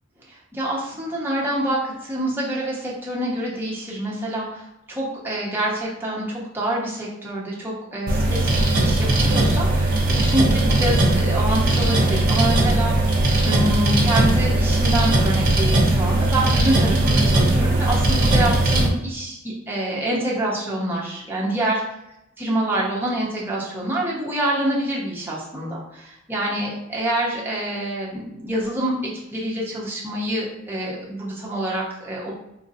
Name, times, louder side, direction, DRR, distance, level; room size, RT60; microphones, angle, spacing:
voice 1, 0.3-13.2 13.4-21.8 22.4-29.0 29.3-32.3, right 1 dB, 10° right, -5 dB, 0.8 m, -26 dB
sound 1, 8.1-18.9, right 2 dB, 45° right, 0.8 m, -19 dB
3.7 x 2.7 x 2.6 m, 0.84 s
head